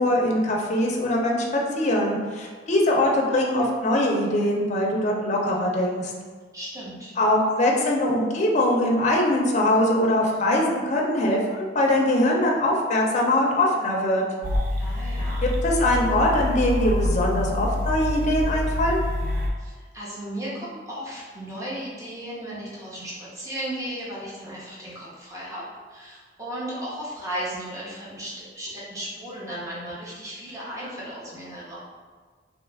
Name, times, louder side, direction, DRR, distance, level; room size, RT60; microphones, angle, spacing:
voice 1, 0.0-6.1 7.2-14.2 15.4-19.0, left 1 dB, 40° left, -1 dB, 0.5 m, -22 dB
voice 2, 6.5-7.1 14.8-15.5 19.6-31.8, right 1 dB, 20° right, -8 dB, 0.8 m, -35 dB
sound 1, 14.4-19.5, left 1 dB, 55° right, 0.4 m, -26 dB
2.8 x 2.3 x 3.3 m, 1.5 s
head